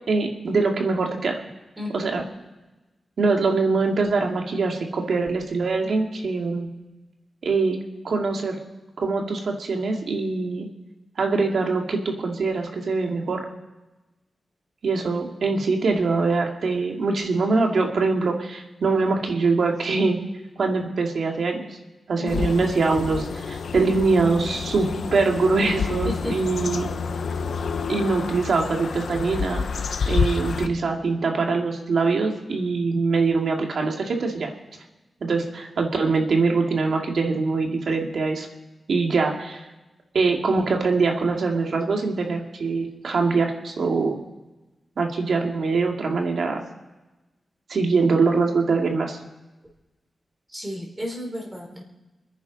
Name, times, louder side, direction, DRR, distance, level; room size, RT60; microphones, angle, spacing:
voice 1, 0.1-1.4 1.9-2.2 3.2-6.7 7.4-7.8 8.0-8.6 9.0-10.7 11.2-13.4 14.8-20.2 20.6-21.6 22.1-26.9 27.9-29.7 30.1-34.5 35.2-38.5 38.9-39.7 40.1-44.2 45.0-46.6 47.7-49.2, right 4 dB, 70° right, 2 dB, 2.4 m, -23 dB
voice 2, 1.8-2.2 22.2-22.7 26.0-26.4 50.5-51.8, left 1 dB, 15° right, 0 dB, 4.0 m, -32 dB
sound 1, 22.3-30.7, left 5 dB, 75° left, 0.9 m, -28 dB
28.0 x 10.0 x 4.1 m, 1.1 s
wide cardioid pair, 125°, 0 cm